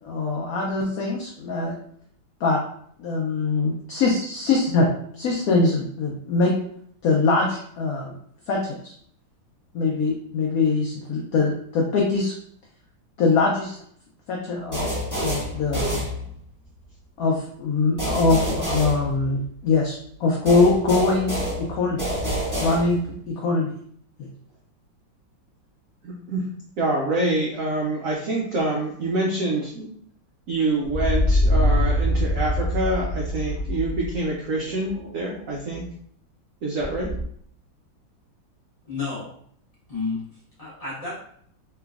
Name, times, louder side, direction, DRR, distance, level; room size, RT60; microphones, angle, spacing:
voice 1, 0.0-1.7 2.4-2.6 3.0-4.9 5.1-6.5 7.0-8.1 8.5-8.9 9.7-12.3 13.2-13.8 14.3-14.9 15.2-16.0 17.2-22.0 22.6-23.0 23.3-23.7 24.2-24.3, left 3 dB, 85° left, -1 dB, 0.8 m, -22 dB
sound 1, 14.7-16.6 18.0-19.7 20.5-23.2, equal, 10° right, 1.1 m, -28 dB
voice 2, 26.0-26.5 26.8-29.9 30.5-35.9 36.6-37.1, right 2 dB, 85° right, -2 dB, 0.7 m, -26 dB
sound 2, 30.8-34.2 34.6-35.4 35.7-35.8 36.8-37.2, left 1 dB, 45° right, 0.6 m, -23 dB
voice 3, 38.8-39.3 39.9-41.2, left 4 dB, 30° left, -8 dB, 0.6 m, -31 dB
3.2 x 2.9 x 2.3 m, 0.63 s
omnidirectional pair, 2.1 m